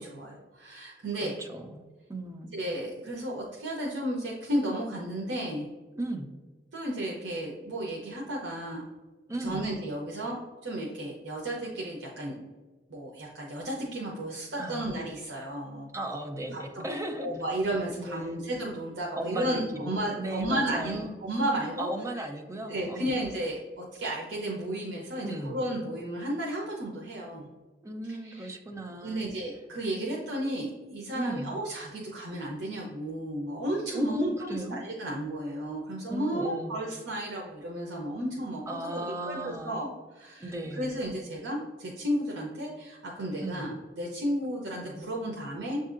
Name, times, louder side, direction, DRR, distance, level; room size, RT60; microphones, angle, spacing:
voice 1, 0.0-1.3 2.5-5.7 6.7-8.8 9.4-10.4 10.6-12.4 12.9-15.9 16.5-16.8 17.2-21.9 22.2-22.3 22.7-27.5 28.2-28.6 29.0-45.8, right 1 dB, 80° right, -3 dB, 0.7 m, -33 dB
voice 2, 1.2-2.5 5.9-6.3 9.3-9.7 14.6-15.0 15.9-17.3 18.0-18.4 19.2-21.2 21.8-23.1 25.2-25.6 27.8-29.3 31.1-31.6 33.9-34.8 36.1-36.8 38.7-39.8 40.4-40.9 43.4-43.7, right 1 dB, 15° right, 4 dB, 0.5 m, -36 dB
7.3 x 2.7 x 2.4 m, 1.3 s
head